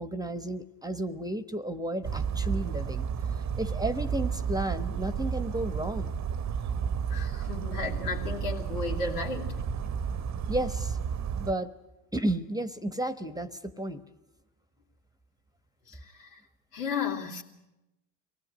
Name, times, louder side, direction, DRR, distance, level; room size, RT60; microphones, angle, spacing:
voice 1, 0.0-3.1 3.6-6.1 10.5-11.0 11.3-11.7 12.1-14.0, right 1 dB, 10° right, 11 dB, 1.2 m, -32 dB
Bird vocalization bird call bird song, 2.0-11.5, right 7 dB, 35° right, 1.0 m, -32 dB
voice 2, 7.1-9.9 15.9-16.4 16.7-17.4, left 4 dB, 80° left, 1 dB, 3.3 m, -34 dB
23.5 x 17.5 x 10.0 m, 0.97 s
hypercardioid pair, 75°, 46 cm